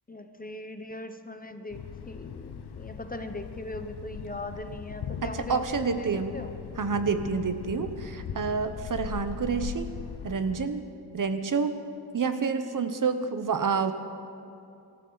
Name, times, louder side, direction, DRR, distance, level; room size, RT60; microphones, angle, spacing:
voice 1, 0.1-6.5, left 2 dB, 20° left, 7 dB, 0.8 m, -39 dB
Thunder, 1.7-10.7, left 7 dB, 85° left, 0.8 m, -39 dB
voice 2, 5.2-6.3 6.8-9.9 10.2-10.8 11.1-11.8 12.1-13.9, right 5 dB, 55° right, 9 dB, 1.0 m, -28 dB
25.0 x 14.0 x 4.0 m, 2.6 s
wide cardioid pair, 135°, 39 cm